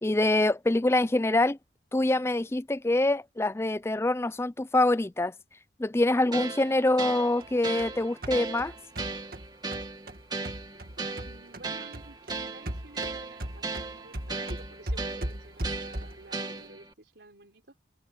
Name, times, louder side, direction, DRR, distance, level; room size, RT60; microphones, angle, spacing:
voice 1, 0.0-1.6 1.9-5.3 5.8-8.7, left 2 dB, 15° left, 0.4 m, -25 dB
sound 1, 6.3-16.9, right 3 dB, 25° right, 2.0 m, -37 dB
sound 2, 7.4-11.7 11.9-16.3, right 1 dB, 50° right, 2.1 m, -38 dB
voice 2, 11.2-17.8, right 2 dB, 70° right, 3.8 m, -52 dB
head